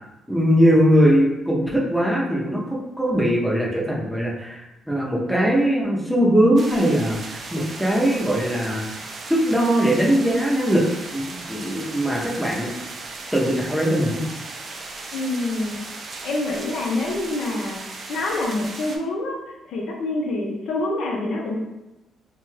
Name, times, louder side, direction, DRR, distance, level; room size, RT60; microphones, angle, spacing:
voice 1, 0.3-4.6 4.9-8.9 9.3-10.8 11.1-12.7 13.3-14.2, equal, ahead, -4 dB, 0.7 m, -20 dB
sound 1, 6.6-19.0, right 3 dB, 45° right, 0.4 m, -37 dB
voice 2, 15.1-15.7 16.2-17.8 18.1-19.4 19.7-21.5, left 2 dB, 75° left, -1 dB, 0.6 m, -26 dB
2.6 x 2.3 x 3.2 m, 0.96 s
cardioid pair, 90°, 0 cm